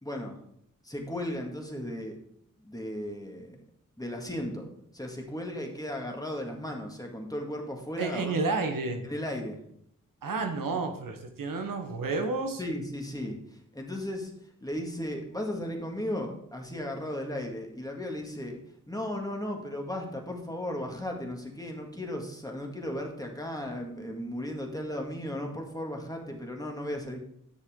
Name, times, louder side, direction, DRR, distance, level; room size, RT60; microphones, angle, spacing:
voice 1, 0.0-0.4 0.8-2.2 2.6-3.6 4.0-4.7 4.9-8.4 9.1-9.6 12.6-13.4 13.7-14.3 14.6-18.6 18.9-27.2, left 1 dB, 10° left, 1 dB, 2.0 m, -35 dB
voice 2, 8.0-9.0 10.2-12.6, right 3 dB, 85° right, 5 dB, 1.1 m, -30 dB
10.0 x 6.5 x 3.7 m, 0.71 s
cardioid pair, 50°, 32 cm